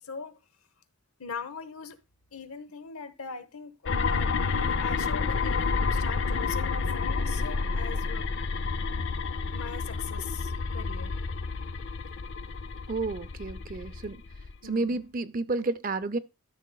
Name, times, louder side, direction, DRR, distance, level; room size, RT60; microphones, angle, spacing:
voice 1, 0.0-0.4 1.2-2.0 2.3-8.2 9.5-11.2 14.6-15.0, left 5 dB, 85° left, 0.9 m, -40 dB
sound 1, 3.9-14.6, left 4 dB, 55° left, 0.5 m, -30 dB
voice 2, 12.9-14.2 14.6-16.2, right 3 dB, 40° right, 0.5 m, -31 dB
13.0 x 6.4 x 2.3 m
head